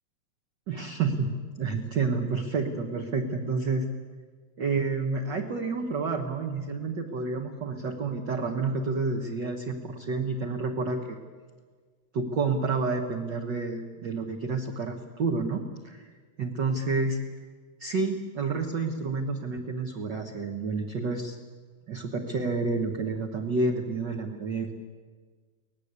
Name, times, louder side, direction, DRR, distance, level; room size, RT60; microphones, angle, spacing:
voice 1, 0.7-1.3 1.6-3.9 4.6-11.2 12.1-16.1 16.4-17.2 17.8-21.4 21.9-24.7, right 4 dB, 45° right, 2 dB, 1.6 m, -29 dB
24.0 x 18.5 x 8.2 m, 1.5 s
omnidirectional pair, 3.4 m